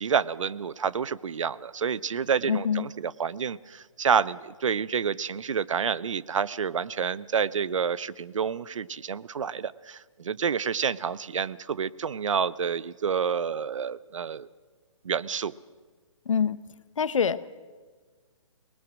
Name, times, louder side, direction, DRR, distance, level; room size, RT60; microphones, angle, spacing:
voice 1, 0.0-14.5 15.0-15.5, right 6 dB, 70° right, 19 dB, 0.7 m, -29 dB
voice 2, 2.5-2.9 16.3-16.6 17.0-17.5, left 7 dB, 70° left, 15 dB, 0.9 m, -25 dB
24.5 x 20.0 x 6.3 m, 1.4 s
hypercardioid pair, 165°, 17 cm